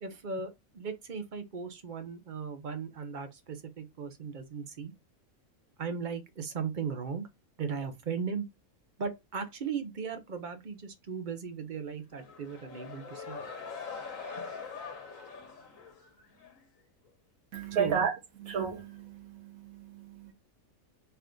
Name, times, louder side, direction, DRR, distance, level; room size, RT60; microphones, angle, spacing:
voice 1, 0.0-4.9 5.8-7.3 7.6-8.5 9.0-13.4 14.3-14.5 17.8-18.0, right 6 dB, 50° right, 0.6 m, -37 dB
sound 1, 12.1-16.6, left 5 dB, 65° left, 1.4 m, -43 dB
voice 2, 17.5-18.1 18.4-20.3, right 7 dB, 75° right, 1.5 m, -33 dB
4.5 x 2.5 x 3.6 m
omnidirectional pair, 1.5 m